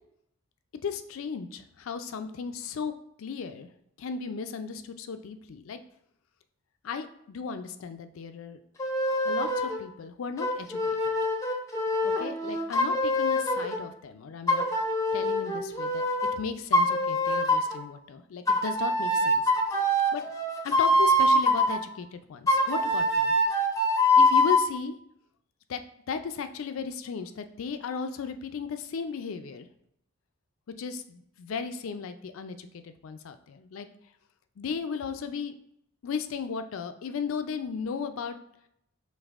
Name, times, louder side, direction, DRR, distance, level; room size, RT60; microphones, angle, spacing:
voice 1, 0.8-2.9 3.2-3.7 4.0-5.8 6.8-8.6 9.2-11.1 12.0-14.6 15.1-16.0 16.3-19.4 19.8-20.2 20.6-23.3 24.2-25.0 25.7-25.8 26.1-29.7 30.8-33.9 34.6-35.5 36.0-38.4, left 6 dB, 75° left, 9 dB, 0.4 m, -35 dB
sound 1, 8.8-9.8 10.4-13.8 14.5-16.3 16.7-17.8 18.5-21.8 22.5-24.7, left 1 dB, 15° left, 0.5 m, -24 dB
5.3 x 3.2 x 2.4 m, 0.73 s
head